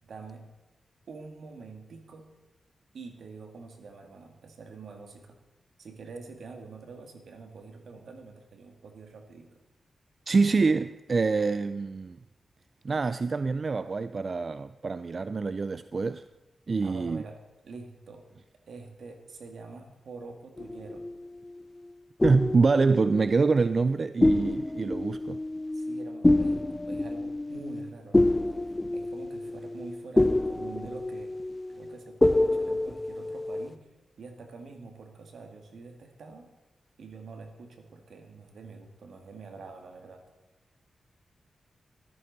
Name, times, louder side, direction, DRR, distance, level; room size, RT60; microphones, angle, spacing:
voice 1, 0.0-0.5 1.1-2.3 2.9-5.4 5.8-9.6 16.8-17.4 17.6-18.3 18.7-21.1 25.7-31.3 31.7-33.9 34.2-36.5 37.0-40.2, right 4 dB, 80° right, 1.9 m, -46 dB
voice 2, 10.3-12.2 12.8-16.2 16.7-17.2 22.2-25.4, right 4 dB, 50° right, 0.4 m, -25 dB
sound 1, 20.6-21.6 22.2-23.9 24.2-33.7, left 2 dB, 20° left, 0.4 m, -27 dB
14.0 x 13.5 x 4.1 m
cardioid pair, 55°, 0 cm